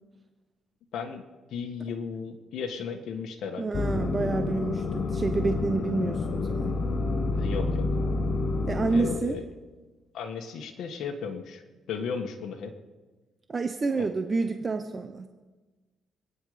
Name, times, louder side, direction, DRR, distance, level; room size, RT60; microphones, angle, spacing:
voice 1, 0.9-3.7 7.3-7.8 8.9-9.4 10.1-11.6 11.9-12.7 14.0-14.1, left 6 dB, 75° left, 3 dB, 1.7 m, -35 dB
voice 2, 3.6-6.7 8.7-9.4 13.5-15.3, right 4 dB, 35° right, 7 dB, 1.0 m, -29 dB
sound 1, 3.7-9.2, left 3 dB, 55° left, 1.4 m, -28 dB
26.5 x 10.0 x 5.2 m, 1.3 s
cardioid pair, 90°, 0 cm